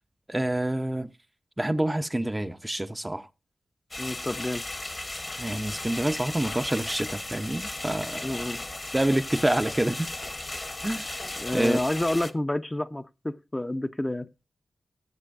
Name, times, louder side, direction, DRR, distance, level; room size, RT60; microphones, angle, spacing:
voice 1, 0.3-1.1 1.6-3.3 5.4-8.4 8.9-10.3 10.8-11.1 11.5-11.8, right 1 dB, 20° right, 0.7 m, -27 dB
sound 1, 3.9-12.3, left 2 dB, 35° left, 1.2 m, -36 dB
voice 2, 4.0-4.6 8.2-8.6 11.2-14.3, left 1 dB, 20° left, 0.7 m, -29 dB
16.0 x 6.9 x 2.6 m
cardioid pair, 45°, 0 cm